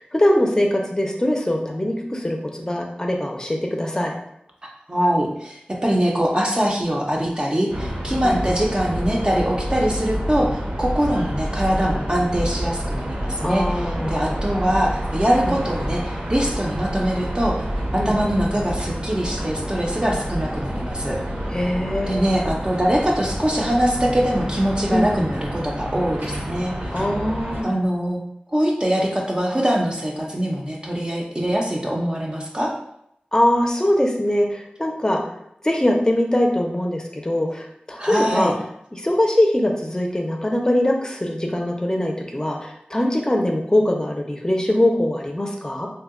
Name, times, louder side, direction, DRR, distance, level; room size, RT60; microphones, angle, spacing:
voice 1, 0.0-4.1 8.2-8.4 13.4-14.2 15.5-15.6 18.0-18.1 21.5-22.2 24.9-25.3 26.9-27.8 33.3-35.2 35.6-38.5 38.9-45.9, left 1 dB, 20° left, 1 dB, 0.5 m, -22 dB
voice 2, 4.9-17.6 17.9-21.2 22.1-26.7 27.6-28.2 28.5-32.7 38.0-38.5, equal, 25° right, -2 dB, 0.5 m, -23 dB
sound 1, 7.7-27.6, equal, 60° right, 0.7 m, -28 dB
2.7 x 2.2 x 3.7 m, 0.76 s
wide cardioid pair, 50°, 3 cm